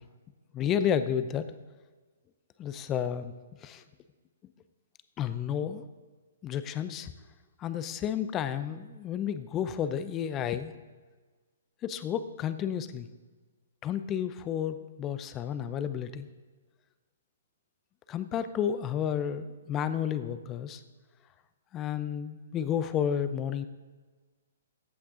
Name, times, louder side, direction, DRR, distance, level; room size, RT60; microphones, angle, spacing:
voice 1, 0.5-1.5 2.6-3.3 3.6-3.8 5.2-5.9 6.4-7.1 7.6-10.7 11.8-13.1 13.8-16.3 18.1-20.8 21.7-23.7, left 9 dB, 25° left, 12 dB, 0.7 m, -31 dB
14.5 x 8.5 x 3.8 m, 1.4 s
hypercardioid pair, 135°, 0 cm